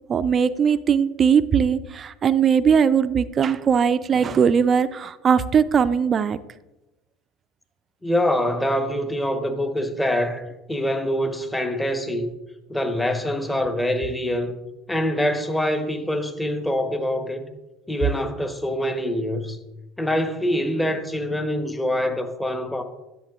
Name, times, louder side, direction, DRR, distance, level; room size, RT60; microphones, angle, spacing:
voice 1, 0.1-6.4, right 7 dB, 35° right, 0.3 m, -20 dB
voice 2, 8.0-12.3 12.7-14.5 14.9-17.4 17.9-19.6 20.0-22.8, left 1 dB, 10° left, 0.9 m, -25 dB
10.5 x 7.0 x 2.4 m
hypercardioid pair, 70°, 0 cm